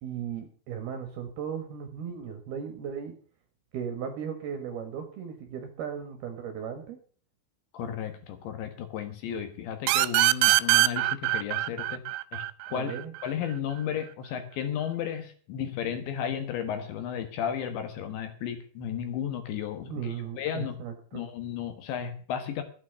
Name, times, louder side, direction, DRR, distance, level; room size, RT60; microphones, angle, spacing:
voice 1, 0.0-3.1 3.7-7.0 12.7-13.1 19.9-21.2, right 7 dB, 65° right, 7 dB, 2.7 m, -36 dB
voice 2, 7.7-12.1 12.3-12.4 12.7-13.0 13.2-20.7 21.1-22.6, left 9 dB, 70° left, 8 dB, 3.3 m, -34 dB
sound 1, 9.9-13.3, right 17 dB, 80° right, 3.1 m, -23 dB
12.5 x 8.8 x 6.8 m, 0.43 s
omnidirectional pair, 5.9 m